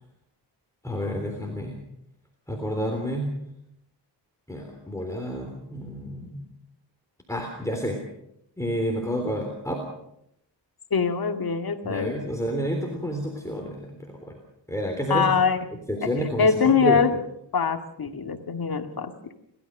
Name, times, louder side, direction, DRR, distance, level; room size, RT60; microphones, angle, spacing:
voice 1, 0.8-1.8 2.5-3.3 4.5-6.4 7.3-8.0 8.6-9.8 11.8-14.3 14.7-15.4 15.7-17.1, equal, 5° left, 1 dB, 3.4 m, -29 dB
voice 2, 10.9-12.1 15.1-15.6 16.4-17.1 17.5-19.1, left 6 dB, 55° left, 7 dB, 2.0 m, -23 dB
30.0 x 13.0 x 6.6 m, 0.78 s
wide cardioid pair, 95°, 43 cm